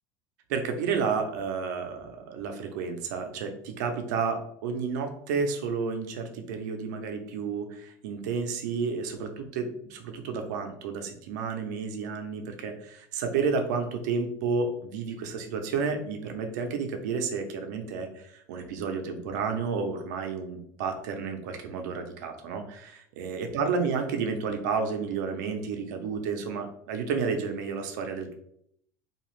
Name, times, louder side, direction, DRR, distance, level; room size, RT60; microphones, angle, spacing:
voice 1, 0.5-28.3, right 5 dB, 85° right, 5 dB, 0.6 m, -31 dB
2.8 x 2.4 x 3.1 m, 0.71 s
cardioid pair, 175°, 9 cm